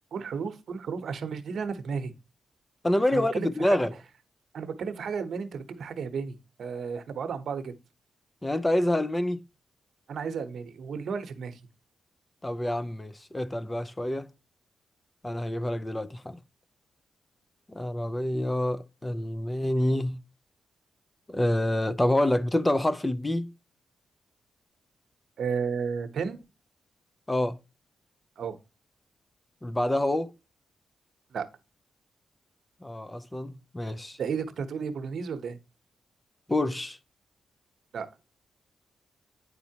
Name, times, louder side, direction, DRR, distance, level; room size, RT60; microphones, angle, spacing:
voice 1, 0.1-2.1 3.1-3.8 4.5-7.7 10.1-11.6 25.4-26.4 28.4-28.6 31.3-31.4 34.2-35.6 37.9-38.1, right 6 dB, 70° right, 0.9 m, -33 dB
voice 2, 2.8-3.9 8.4-9.4 12.4-14.3 15.2-16.4 17.7-20.2 21.3-23.5 27.3-27.6 29.6-30.3 32.8-34.2 36.5-37.0, left 1 dB, 15° left, 0.5 m, -27 dB
9.6 x 4.2 x 2.8 m
cardioid pair, 100°, 0 cm